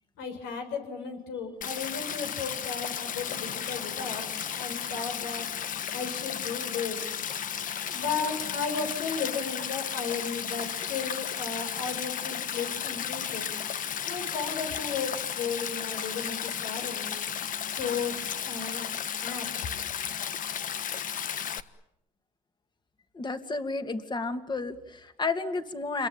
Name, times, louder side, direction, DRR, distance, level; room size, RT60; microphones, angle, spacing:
voice 1, 0.2-4.2 4.6-5.5 5.9-7.0 7.9-13.5 14.1-17.1 17.7-18.9 19.2-19.5, left 5 dB, 85° left, 6 dB, 6.8 m, -35 dB
Stream, 1.6-21.6, left 8 dB, 50° left, 1.4 m, -34 dB
voice 2, 23.1-26.1, left 3 dB, 25° left, 8 dB, 2.7 m, -32 dB
28.0 x 22.5 x 9.0 m, 0.79 s
cardioid pair, 110°, 17 cm